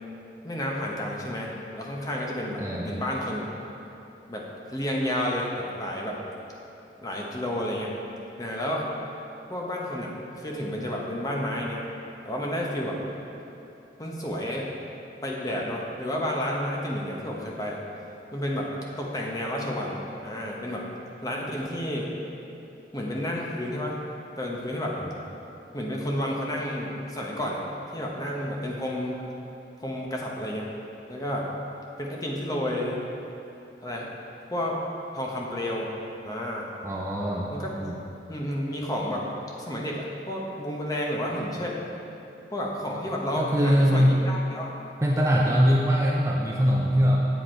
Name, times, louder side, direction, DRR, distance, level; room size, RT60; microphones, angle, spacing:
voice 1, 0.4-3.5 4.3-6.2 7.0-7.9 8.4-8.9 9.5-11.9 12.2-13.0 14.0-14.7 15.2-17.8 18.3-18.7 19.0-20.8 21.2-22.1 22.9-24.0 24.4-25.0 25.7-27.6 27.9-29.2 29.8-30.7 31.1-31.5 32.0-33.0 33.8-34.1 34.5-34.8 35.1-35.9 36.2-36.7 37.5-37.7 38.3-39.2 39.6-41.8 42.5-44.7 45.4-45.6, left 1 dB, 20° left, -2 dB, 1.0 m, -31 dB
voice 2, 2.6-3.0 36.8-37.5 37.8-38.0 43.4-44.2 45.0-47.2, equal, 15° right, -2 dB, 0.6 m, -22 dB
8.2 x 7.5 x 4.5 m, 2.9 s
head